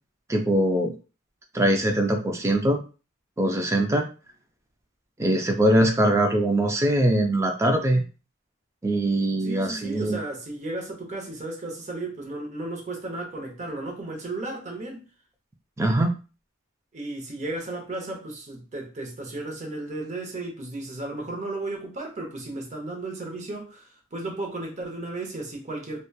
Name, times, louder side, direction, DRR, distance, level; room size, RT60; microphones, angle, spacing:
voice 1, 0.3-0.9 1.5-2.8 3.4-4.1 5.2-8.0 8.8-10.2 15.8-16.1, right 1 dB, 15° right, 0.3 m, -22 dB
voice 2, 9.4-15.1 16.9-26.1, right 2 dB, 35° right, 0.7 m, -34 dB
2.9 x 2.1 x 2.2 m
head